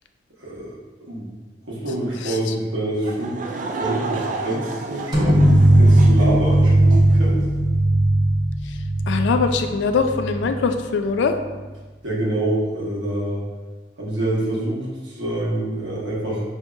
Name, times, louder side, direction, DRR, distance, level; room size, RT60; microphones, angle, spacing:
voice 1, 0.4-1.3 1.7-3.4 3.7-5.4 5.7-7.4 12.0-13.4 14.0-16.4, right 1 dB, 90° right, -5 dB, 1.1 m, -26 dB
voice 2, 2.2-2.5 8.6-8.8 9.1-11.4, left 5 dB, 75° left, 7 dB, 0.3 m, -22 dB
Laughter / Crowd, 3.0-7.2, right 3 dB, 45° right, 0.3 m, -31 dB
sound 1, 5.1-10.7, right 1 dB, 25° right, 0.7 m, -17 dB
5.0 x 2.7 x 2.3 m, 1.3 s
head